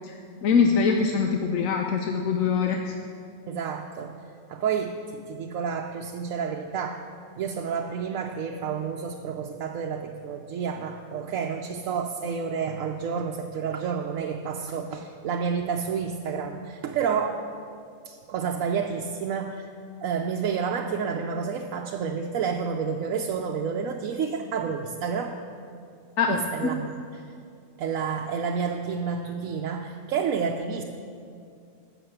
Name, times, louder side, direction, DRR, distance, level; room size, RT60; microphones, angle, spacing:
voice 1, 0.0-2.9 26.2-26.8, left 5 dB, 80° left, 3 dB, 1.1 m, -24 dB
voice 2, 3.5-4.1 4.5-7.0 7.4-17.4 18.0-19.7 20.0-25.4 26.3-27.2 27.8-30.8, right 6 dB, 85° right, 2 dB, 1.1 m, -30 dB
12.5 x 6.5 x 7.9 m, 2.4 s
omnidirectional pair, 1.4 m